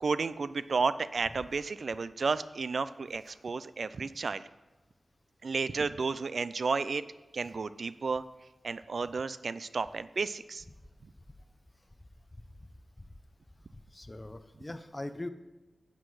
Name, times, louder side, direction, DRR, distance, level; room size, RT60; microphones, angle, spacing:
voice 1, 0.0-4.4 5.4-7.0 7.3-8.2 8.6-10.6, right 4 dB, 70° right, 15 dB, 0.3 m, -32 dB
voice 2, 13.9-15.3, left 1 dB, 25° left, 10 dB, 0.7 m, -41 dB
10.0 x 8.3 x 4.8 m, 1.1 s
wide cardioid pair, 75°, 0 cm